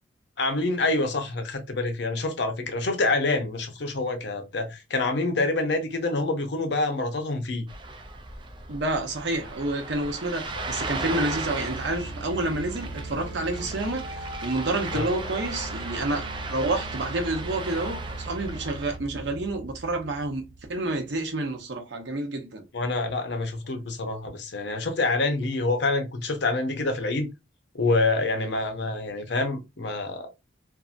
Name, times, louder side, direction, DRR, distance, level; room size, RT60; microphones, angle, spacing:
voice 1, 0.4-7.7 14.9-15.1 22.7-27.3 27.7-30.3, left 2 dB, 60° left, 0.6 m, -26 dB
Ocean, 7.7-19.0, right 3 dB, 25° right, 0.3 m, -37 dB
voice 2, 8.7-20.4 20.7-22.7, right 2 dB, 60° right, 0.7 m, -29 dB
sound 1, 10.4-21.4, right 2 dB, 85° right, 1.1 m, -39 dB
2.7 x 2.5 x 2.4 m
head